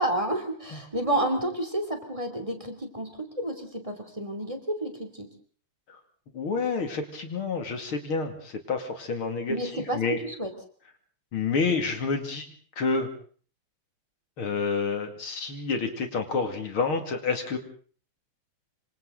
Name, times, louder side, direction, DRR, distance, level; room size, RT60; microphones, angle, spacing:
voice 1, 0.0-5.3 9.5-10.5, right 1 dB, 15° right, 5 dB, 3.1 m, -30 dB
voice 2, 6.3-10.2 11.3-12.5 12.8-13.1 14.4-17.6, left 4 dB, 70° left, 6 dB, 3.3 m, -29 dB
26.5 x 25.5 x 3.9 m, 0.44 s
omnidirectional pair, 2.4 m